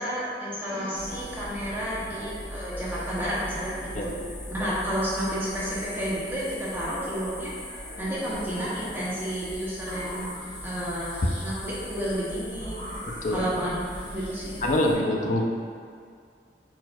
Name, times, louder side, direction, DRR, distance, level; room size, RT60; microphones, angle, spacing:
voice 1, 0.0-4.2 4.5-7.5 8.0-10.3 10.6-12.8 13.3-14.7, equal, 10° right, -8 dB, 0.8 m, -31 dB
sound 1, 0.7-2.5 2.8-4.6 4.9-6.9 7.5-9.2 9.7-11.5 12.5-14.3, equal, 65° right, 1.4 m, -44 dB
sound 2, 0.9-15.0, left 1 dB, 65° left, 1.3 m, -40 dB
voice 2, 13.1-13.4 14.6-15.5, left 1 dB, 45° left, 1 dB, 0.4 m, -25 dB
4.4 x 4.0 x 2.2 m, 2.2 s
head